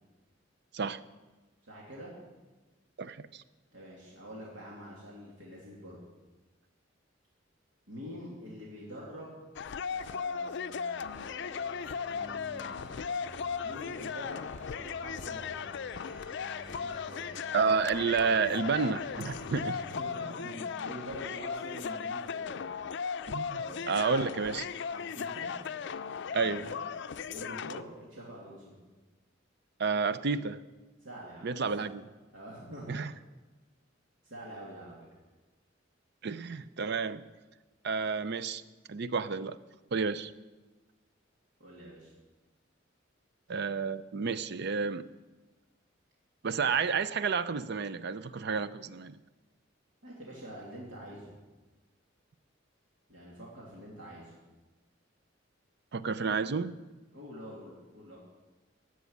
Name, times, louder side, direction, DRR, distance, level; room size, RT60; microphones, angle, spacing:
voice 1, 1.6-2.1 3.7-6.0 7.9-9.3 9.9-11.1 12.1-12.8 13.6-15.8 16.7-17.3 19.8-22.6 23.5-24.1 24.9-25.5 26.2-28.8 31.0-31.9 32.3-32.9 34.2-35.0 41.6-42.1 50.0-51.3 53.1-54.3 57.1-58.2, equal, 80° right, -4 dB, 2.8 m, -46 dB
voice 2, 3.0-3.4 17.5-19.8 23.3-24.7 26.3-26.7 29.8-30.6 31.4-32.0 32.9-33.1 36.2-37.2 37.8-38.6 38.9-39.6 39.9-40.3 43.5-45.0 46.4-49.2 55.9-56.7, right 5 dB, 60° right, 14 dB, 0.6 m, -30 dB
sound 1, 9.6-27.8, left 6 dB, 65° left, 0.5 m, -37 dB
Organ, 10.9-20.1, equal, 30° right, 5.6 m, -51 dB
15.0 x 6.3 x 9.5 m, 1.2 s
head